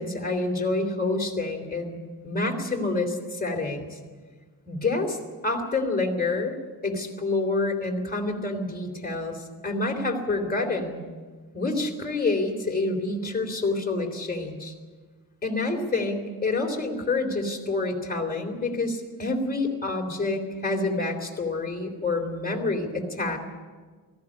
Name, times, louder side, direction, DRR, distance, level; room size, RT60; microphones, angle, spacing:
voice 1, 0.0-2.0 2.2-4.0 4.7-5.2 5.4-6.6 6.8-9.4 9.6-11.0 11.5-14.7 15.4-23.4, left 3 dB, 25° left, 2 dB, 3.5 m, -27 dB
17.5 x 15.5 x 9.9 m, 1.5 s
wide cardioid pair, 115°, 39 cm